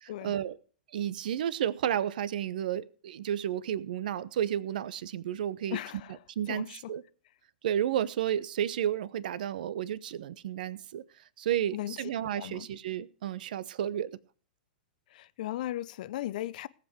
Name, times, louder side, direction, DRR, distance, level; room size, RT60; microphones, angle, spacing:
voice 1, 0.0-0.6 0.9-5.8 6.4-7.0 7.6-14.2, right 10 dB, 60° right, 0.8 m, -32 dB
voice 2, 5.7-6.2 6.5-6.8 11.7-12.0 12.3-12.7 15.1-16.7, left 14 dB, 55° left, 0.7 m, -37 dB
18.0 x 7.6 x 5.0 m
figure-of-eight pair, 105°, 5 cm